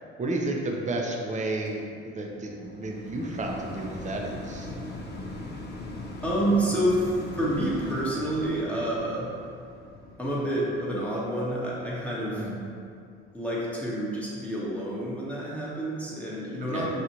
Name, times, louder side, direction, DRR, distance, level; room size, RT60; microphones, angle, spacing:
voice 1, 0.2-4.7 12.3-12.6 16.7-16.9, right 2 dB, 25° right, 0 dB, 0.7 m, -32 dB
sound 1, 1.7-12.9 13.5-13.6, left 2 dB, 35° left, 0.7 m, -40 dB
voice 2, 6.2-9.3 10.2-12.5 13.3-17.0, right 1 dB, 5° left, -7 dB, 1.1 m, -28 dB
6.0 x 2.4 x 2.9 m, 2.4 s
hypercardioid pair, 70°, 31 cm